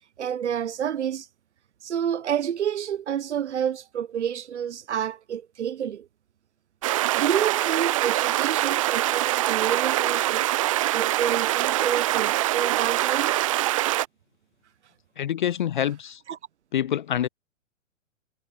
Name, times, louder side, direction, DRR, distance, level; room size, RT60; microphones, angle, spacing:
voice 1, 0.2-1.3 1.8-6.1 7.1-10.5 10.9-13.4 16.3-16.4, right 9 dB, 60° right, 1.1 m, -29 dB
sound 1, 6.8-14.1, right 15 dB, 25° right, 0.6 m, -24 dB
voice 2, 15.2-16.2 16.7-17.3, left 10 dB, 40° left, 0.4 m, -26 dB
figure-of-eight pair, 120°, 39 cm